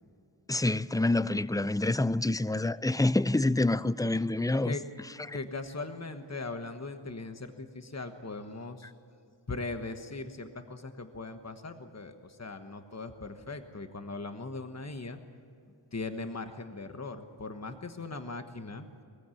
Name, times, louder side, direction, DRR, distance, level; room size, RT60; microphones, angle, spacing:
voice 1, 0.5-4.7 5.3-5.4, left 2 dB, 10° left, 0.4 m, -27 dB
voice 2, 5.3-8.9 9.5-15.2 15.9-18.9, left 3 dB, 35° left, 1.3 m, -39 dB
22.0 x 15.0 x 8.5 m
wide cardioid pair, 55°, 45 cm